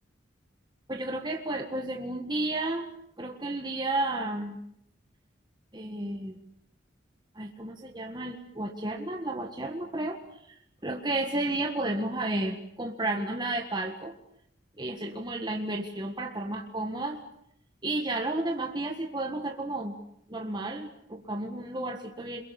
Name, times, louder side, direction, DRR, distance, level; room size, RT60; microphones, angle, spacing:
voice 1, 0.9-2.9 3.2-4.6 5.7-6.4 7.3-10.2 10.8-14.2 14.8-17.2 17.8-19.9 20.3-22.4, right 2 dB, 25° right, 2 dB, 1.6 m, -32 dB
28.5 x 22.5 x 7.0 m, 0.72 s
head